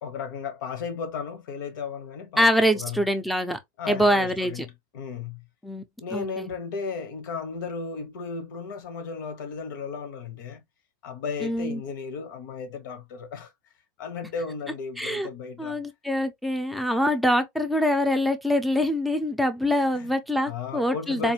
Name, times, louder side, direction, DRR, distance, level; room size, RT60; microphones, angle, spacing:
voice 1, 0.0-2.5 2.7-3.0 3.8-5.4 6.0-10.6 11.0-13.5 14.0-15.8 19.9-20.1 20.5-21.3, left 5 dB, 80° left, 1.2 m, -35 dB
voice 2, 2.4-3.6 3.9-4.7 5.6-5.8 6.1-6.5 11.4-11.8 15.0-15.3 15.6-21.3, equal, ahead, 0.6 m, -24 dB
4.0 x 2.6 x 2.9 m
supercardioid pair, 145°, 11 cm